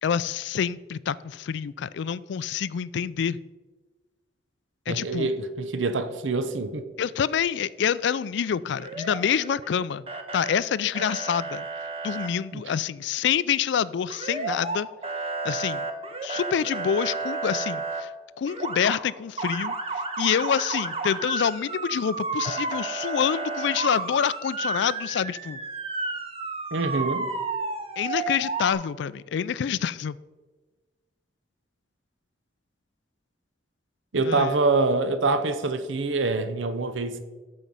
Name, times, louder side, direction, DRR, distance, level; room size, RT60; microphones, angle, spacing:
voice 1, 0.0-3.4 4.9-5.3 7.0-10.0 10.3-11.6 12.0-14.9 15.4-15.9 16.2-18.1 18.4-19.7 20.2-25.6 28.0-30.2 34.2-34.6, left 8 dB, 65° left, 18 dB, 0.3 m, -27 dB
voice 2, 4.9-6.9 12.5-12.6 26.7-27.3 34.1-37.2, right 3 dB, 85° right, 10 dB, 0.8 m, -25 dB
Motor vehicle (road) / Siren, 8.8-9.8 10.1-10.6 10.9-12.3 14.1-14.8 15.0-18.0 18.5-19.0 19.4-28.7, right 3 dB, 30° right, 1.1 m, -32 dB
13.5 x 5.3 x 5.4 m, 1.3 s
head